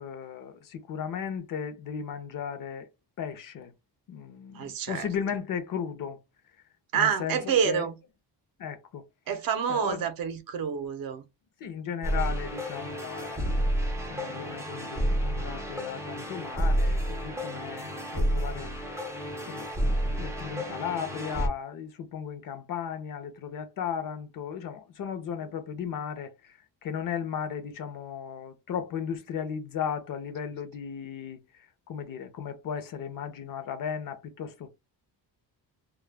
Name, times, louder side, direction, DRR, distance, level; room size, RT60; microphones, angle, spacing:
voice 1, 0.0-2.9 3.2-3.7 4.1-6.2 6.9-7.9 8.6-9.0 9.7-10.1 11.6-13.6 14.1-18.7 19.5-31.4 31.9-34.7, left 7 dB, 50° left, 0.6 m, -36 dB
voice 2, 4.5-5.1 6.9-8.0 9.3-11.3 25.4-25.5, right 7 dB, 55° right, 0.6 m, -28 dB
sound 1, 12.0-21.5, equal, 5° right, 0.4 m, -30 dB
2.2 x 2.1 x 3.2 m
cardioid pair, 180°, 41 cm